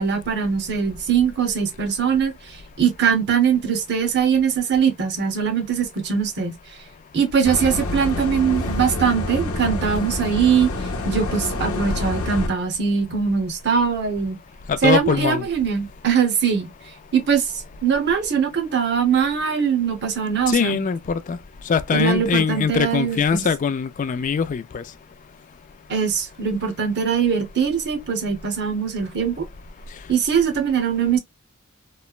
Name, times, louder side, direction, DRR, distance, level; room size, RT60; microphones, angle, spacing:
voice 1, 0.0-2.3 2.8-6.6 7.1-10.7 11.0-14.4 14.8-16.7 17.1-17.5 17.8-20.9 21.9-23.4 25.9-29.5 30.1-31.2, right 7 dB, 50° right, 0.8 m, -21 dB
sound 1, 7.4-12.5, left 2 dB, 70° left, 0.8 m, -27 dB
voice 2, 14.7-15.5 20.5-21.4 21.7-24.8, left 6 dB, 35° left, 0.3 m, -22 dB
3.1 x 2.0 x 2.3 m
head